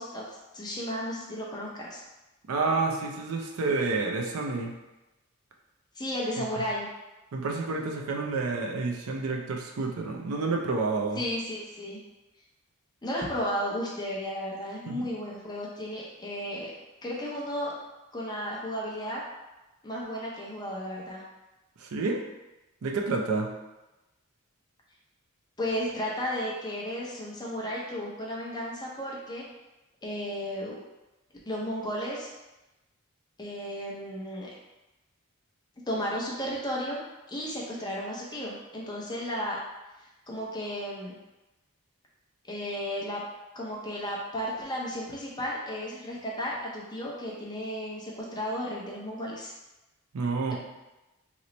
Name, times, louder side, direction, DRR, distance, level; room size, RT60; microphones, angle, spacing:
voice 1, 0.0-2.0 5.9-6.9 11.2-12.0 13.0-16.7 17.0-17.7 18.1-19.2 19.8-21.2 25.6-29.4 30.0-30.7 31.5-32.3 33.4-34.5 35.9-37.0 37.3-39.6 40.3-41.2 42.5-43.2 43.5-49.5, equal, 20° left, -4 dB, 0.6 m, -34 dB
voice 2, 2.5-4.7 6.4-6.5 7.3-11.2 14.9-15.1 21.8-22.2 22.8-23.5 50.1-50.5, right 3 dB, 80° right, 1 dB, 0.5 m, -29 dB
3.0 x 2.1 x 3.8 m, 1.0 s
head